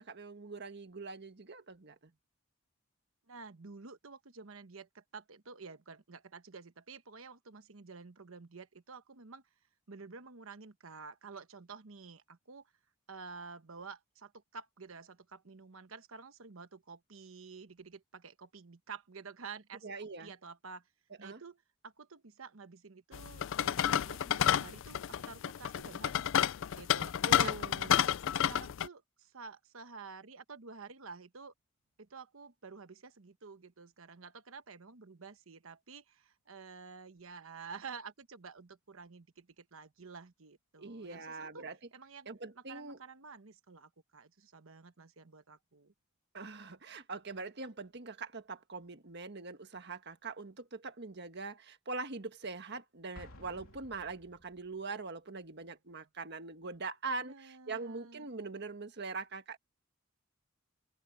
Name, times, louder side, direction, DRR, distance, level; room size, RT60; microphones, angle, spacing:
voice 1, 0.0-2.1 19.8-20.3 21.2-21.4 27.2-27.9 40.8-41.8 42.3-43.0 46.3-59.6, right 3 dB, 55° right, 1.6 m, -42 dB
voice 2, 3.3-9.4 9.9-12.7 13.1-20.9 21.2-28.1 28.5-31.5 32.0-41.6 41.9-42.3 42.5-45.9 57.2-58.3, right 5 dB, 80° right, 1.1 m, -50 dB
sound 1, 23.1-28.9, left 10 dB, 65° left, 0.4 m, -30 dB
Explosion, 53.1-54.8, left 1 dB, 90° left, 3.3 m, -54 dB
open air
head